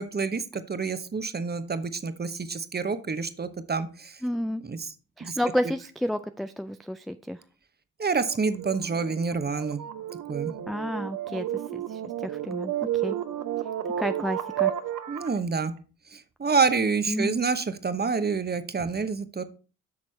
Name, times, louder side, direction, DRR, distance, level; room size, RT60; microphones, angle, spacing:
voice 1, 0.0-4.2 4.6-4.9 5.2-5.4 8.0-9.8 10.3-10.5 15.1-15.7 16.1-19.4, right 5 dB, 25° right, 11 dB, 1.0 m, -28 dB
voice 2, 4.2-4.6 5.2-7.4 10.7-11.5 11.7-13.2 14.0-14.7 17.1-17.4, equal, ahead, 9 dB, 0.3 m, -30 dB
sound 1, 8.1-15.4, right 11 dB, 50° right, 1.0 m, -32 dB
8.7 x 5.9 x 3.3 m, 0.36 s
hypercardioid pair, 50°, 40 cm